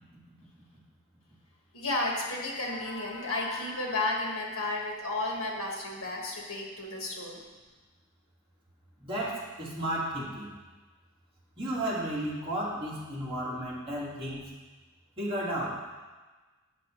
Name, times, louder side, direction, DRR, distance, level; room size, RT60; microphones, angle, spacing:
voice 1, 1.7-7.4, left 2 dB, 90° left, -1 dB, 1.5 m, -32 dB
voice 2, 9.0-10.5 11.6-14.5 15.2-15.8, right 1 dB, 25° right, -7 dB, 1.8 m, -33 dB
8.5 x 5.8 x 3.1 m, 1.3 s
head